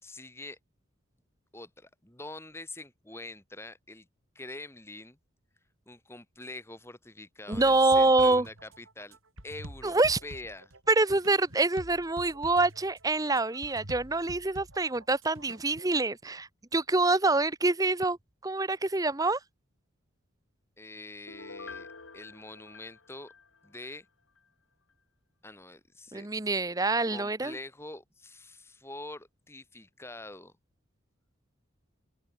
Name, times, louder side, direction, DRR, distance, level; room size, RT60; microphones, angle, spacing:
voice 1, 0.0-0.6 1.5-4.1 4.3-5.2 5.9-9.2 9.4-10.7 20.8-21.9 22.1-23.3 23.6-24.1 25.4-26.3 27.1-30.5, left 2 dB, 10° left, 3.1 m, -45 dB
voice 2, 7.5-8.5 9.8-10.2 10.9-18.2 18.4-19.4 26.1-27.6, right 2 dB, 15° right, 0.8 m, -26 dB
sound 1, 7.5-16.0, right 1 dB, 70° right, 4.5 m, -48 dB
Piano, 21.3-24.0 24.4-24.5, left 4 dB, 70° left, 2.4 m, -47 dB
open air
head